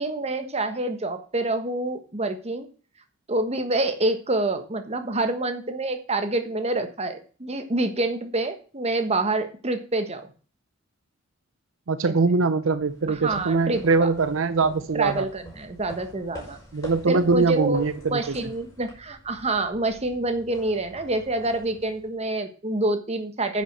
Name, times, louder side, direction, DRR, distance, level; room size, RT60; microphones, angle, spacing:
voice 1, 0.0-2.7 3.3-10.3 12.0-12.1 13.1-14.1 14.9-16.6 17.1-23.6, right 2 dB, 30° right, 8 dB, 1.3 m, -27 dB
voice 2, 11.9-15.2 16.7-18.2, right 4 dB, 65° right, 13 dB, 0.6 m, -22 dB
sound 1, 12.7-22.3, left 1 dB, 15° left, 5.5 m, -46 dB
10.0 x 6.2 x 6.6 m, 0.39 s
head